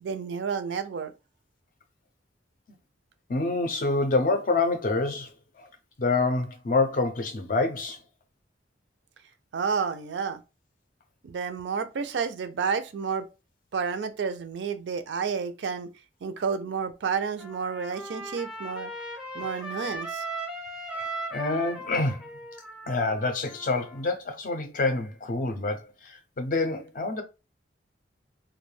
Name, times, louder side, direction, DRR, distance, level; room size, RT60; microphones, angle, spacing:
voice 1, 0.0-1.1 9.5-10.4 11.2-13.3 13.7-15.9 16.2-18.9 19.3-20.2, right 6 dB, 70° right, 0.4 m, -30 dB
voice 2, 3.3-5.7 6.0-8.0 20.9-22.3 22.9-27.2, left 3 dB, 45° left, 0.4 m, -27 dB
Trumpet, 17.4-24.0, right 1 dB, 5° right, 0.5 m, -38 dB
2.3 x 2.1 x 3.1 m
head